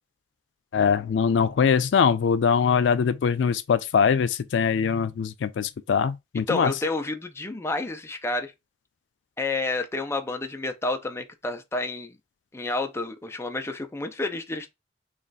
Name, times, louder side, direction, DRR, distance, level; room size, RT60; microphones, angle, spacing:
voice 1, 0.7-6.7, left 6 dB, 90° left, 0.4 m, -22 dB
voice 2, 6.5-8.5 9.4-12.2 12.5-14.7, left 2 dB, 15° left, 0.5 m, -30 dB
3.2 x 2.4 x 3.9 m
head